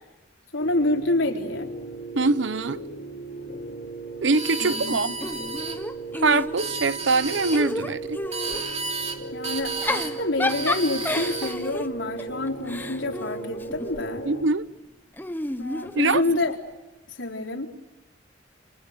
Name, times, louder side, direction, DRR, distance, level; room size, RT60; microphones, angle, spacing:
voice 1, 0.5-1.7 4.6-5.1 9.3-14.3 15.6-16.6 17.1-17.7, left 2 dB, 85° left, 4.2 m, -27 dB
sound 1, 0.6-14.5, right 3 dB, 60° left, 4.0 m, -37 dB
voice 2, 2.1-2.8 4.2-5.1 6.1-8.2 14.2-14.7 15.9-16.2, right 3 dB, 70° right, 0.9 m, -23 dB
sound 2, 4.3-5.8 6.4-7.6 8.3-9.2 9.4-10.1 10.5-11.6, right 4 dB, 35° right, 2.9 m, -32 dB
Giggle / Chuckle chortle, 5.2-6.8 7.2-8.7 9.6-14.1 15.2-16.6, left 1 dB, 10° left, 0.9 m, -32 dB
28.5 x 27.5 x 6.7 m
head